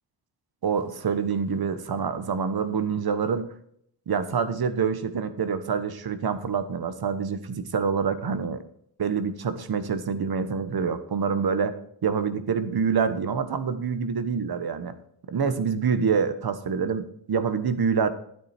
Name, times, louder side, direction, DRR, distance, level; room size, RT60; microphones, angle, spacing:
voice 1, 0.6-3.5 4.1-8.6 9.0-11.7 12.0-14.9 15.3-18.1, right 6 dB, 55° right, 12 dB, 1.3 m, -26 dB
12.5 x 9.2 x 4.4 m, 0.68 s
wide cardioid pair, 100°, 43 cm